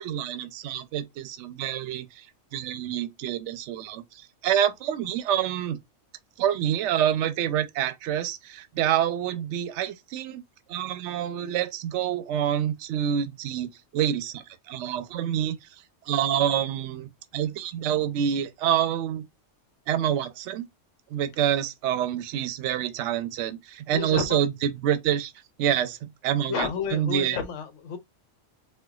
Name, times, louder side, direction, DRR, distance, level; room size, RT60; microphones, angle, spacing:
voice 1, 0.0-2.2 2.5-4.0 4.4-5.8 6.4-10.4 10.7-15.6 16.1-19.3 19.9-20.7 21.1-25.3 25.6-26.0 26.2-27.4, right 10 dB, 70° right, 0.9 m, -27 dB
voice 2, 23.9-24.4 26.5-28.0, left 6 dB, 75° left, 1.1 m, -31 dB
4.3 x 2.2 x 2.3 m
omnidirectional pair, 1.3 m